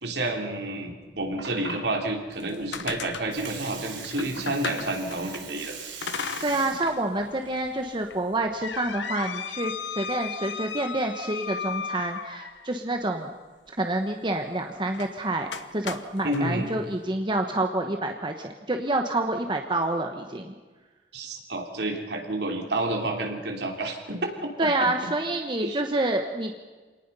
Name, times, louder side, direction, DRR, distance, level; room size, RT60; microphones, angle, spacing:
voice 1, 0.0-5.8 16.2-16.7 21.1-25.1 25.6-25.8, right 2 dB, 65° right, 2 dB, 3.2 m, -30 dB
Water, 1.0-9.0, right 6 dB, 90° right, 3.9 m, -42 dB
sound 1, 2.3-5.4 6.0-7.0 7.4-7.5 8.1-12.8 14.9-15.1 15.5-16.4, left 6 dB, 85° left, 1.1 m, -35 dB
voice 2, 6.4-13.3 13.8-15.5 15.7-20.5 24.6-26.6, right 2 dB, 25° right, 4 dB, 1.2 m, -28 dB
27.0 x 19.0 x 5.6 m, 1.3 s
head